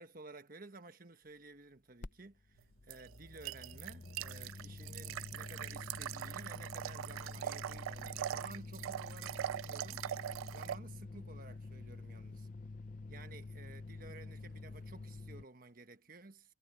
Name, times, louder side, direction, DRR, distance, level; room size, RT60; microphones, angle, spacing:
voice 1, 0.0-10.0 10.5-12.5 13.1-16.5, right 3 dB, 45° right, 1.3 m, -54 dB
sound 1, 2.0-15.5, left 3 dB, 40° left, 0.6 m, -48 dB
sound 2, 2.9-10.8, right 11 dB, 85° right, 0.3 m, -42 dB
head